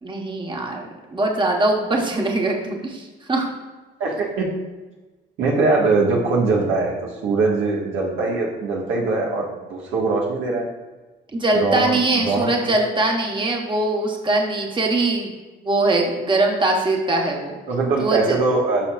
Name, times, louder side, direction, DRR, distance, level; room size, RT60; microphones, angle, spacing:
voice 1, 0.0-3.5 11.3-15.3 15.6-17.6 18.0-18.4, right 2 dB, 25° right, 0 dB, 1.4 m, -22 dB
voice 2, 4.0-4.5 5.4-6.9 7.2-10.7 11.5-12.7 17.7-18.9, right 3 dB, 85° right, -2 dB, 1.8 m, -21 dB
11.5 x 6.0 x 2.5 m, 1.2 s
cardioid pair, 90°, 20 cm